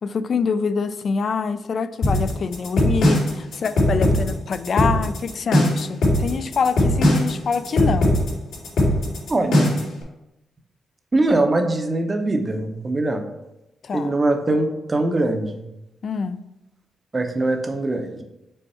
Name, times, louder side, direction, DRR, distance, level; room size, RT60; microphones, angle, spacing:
voice 1, 0.0-8.2 13.8-14.2 16.0-16.4, left 5 dB, 40° left, 13 dB, 0.3 m, -25 dB
sound 1, 2.0-9.9, left 1 dB, 75° left, 2.4 m, -19 dB
voice 2, 9.3-9.8 11.1-13.2 13.9-15.6 17.1-18.2, right 2 dB, 20° right, 5 dB, 0.7 m, -22 dB
5.5 x 4.5 x 4.2 m, 0.90 s
wide cardioid pair, 170°, 0 cm